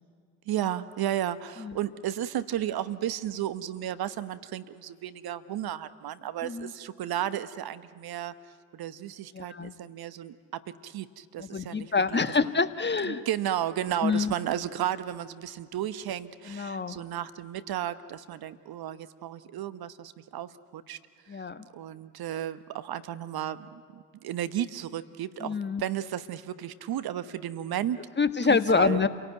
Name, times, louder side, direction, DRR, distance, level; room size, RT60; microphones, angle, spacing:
voice 1, 0.5-8.3 8.7-12.2 13.0-21.0 21.3-28.0 28.5-29.0, right 11 dB, 50° right, 13 dB, 1.2 m, -33 dB
voice 2, 9.3-9.8 11.4-13.2 14.0-14.3 16.5-17.0 21.3-21.6 25.4-25.8 28.2-29.1, left 4 dB, 20° left, 12 dB, 1.5 m, -26 dB
30.0 x 17.5 x 9.3 m, 2.1 s
hypercardioid pair, 55°, 47 cm